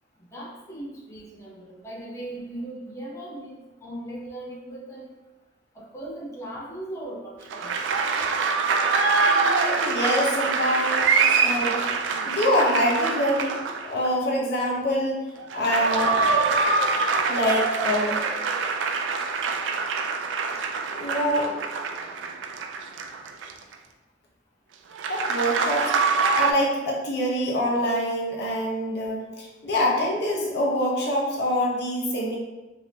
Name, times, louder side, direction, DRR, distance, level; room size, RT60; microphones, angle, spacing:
voice 1, 0.3-5.1 5.7-7.7, right 1 dB, 15° left, -6 dB, 0.7 m, -38 dB
sound 1, 7.5-14.1 15.4-23.7 25.0-26.5, right 4 dB, 90° right, 0.3 m, -24 dB
voice 2, 9.3-11.8 12.2-13.5 13.8-15.2 15.5-16.1 17.3-18.2 20.9-21.5 25.1-32.4, equal, 60° left, -2 dB, 0.7 m, -25 dB
3.3 x 2.7 x 2.8 m, 1.1 s
head